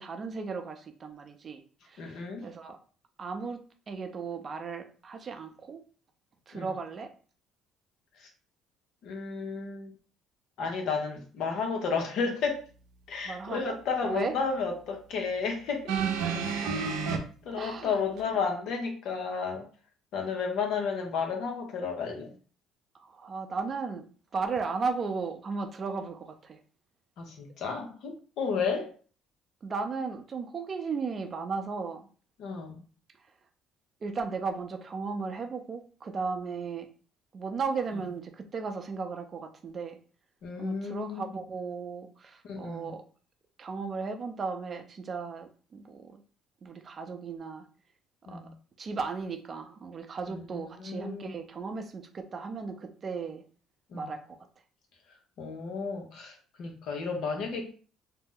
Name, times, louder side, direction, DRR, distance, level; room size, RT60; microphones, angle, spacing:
voice 1, 0.0-1.6 1.9-2.8 3.2-5.8 6.5-7.1 13.2-13.8 14.0-14.4 16.2-16.8 17.6-18.0 23.0-24.1 24.3-26.6 29.6-32.1 34.0-36.9 37.3-40.0 40.6-43.0 43.6-46.2 46.6-47.6 48.3-48.4 48.8-53.4 53.9-54.4, right 4 dB, 40° right, 0.5 m, -35 dB
voice 2, 2.0-2.5 6.5-6.7 8.2-8.3 9.0-9.9 10.6-12.6 13.1-16.0 17.4-19.7 20.1-22.3 27.2-28.9 32.4-32.8 40.4-41.2 42.4-43.0 48.3-48.5 50.3-51.3 53.9-54.1 55.4-57.7, left 5 dB, 70° left, 0.9 m, -32 dB
sound 1, 15.9-17.2 18.2-18.3, right 6 dB, 80° right, 0.6 m, -29 dB
2.7 x 2.1 x 3.7 m
supercardioid pair, 80°, 0 cm